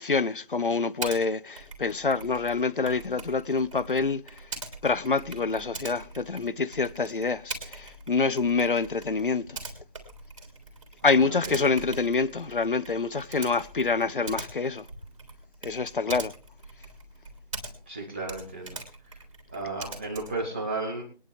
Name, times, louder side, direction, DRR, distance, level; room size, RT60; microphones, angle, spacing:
voice 1, 0.0-4.2 4.8-9.6 11.0-14.8 15.6-16.3, left 4 dB, 60° left, 0.8 m, -26 dB
Typing, 1.0-1.2 1.6-18.0 18.2-20.5, right 3 dB, 30° right, 3.2 m, -42 dB
voice 2, 11.0-11.6 17.9-18.8 19.5-21.0, right 2 dB, 10° right, 1.1 m, -34 dB
21.5 x 10.5 x 3.4 m
figure-of-eight pair, 165°, 29 cm